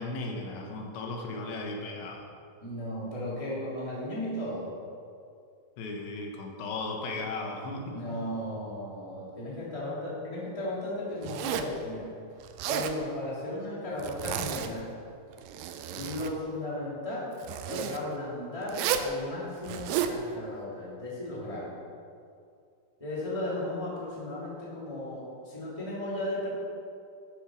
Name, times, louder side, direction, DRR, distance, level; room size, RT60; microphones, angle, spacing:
voice 1, 0.0-2.3 5.8-8.2, left 2 dB, 85° left, 1 dB, 3.7 m, -36 dB
voice 2, 2.6-4.7 7.9-12.1 12.7-14.9 15.9-17.3 17.7-21.7 23.0-26.5, left 1 dB, 10° left, -7 dB, 2.5 m, -35 dB
Zipper (clothing), 11.2-11.8 12.4-13.0 14.0-14.7 15.3-16.3 17.4-18.0 18.7-19.1 19.6-20.2, right 9 dB, 85° right, 2.4 m, -32 dB
12.5 x 8.0 x 6.5 m, 2.4 s
omnidirectional pair, 5.2 m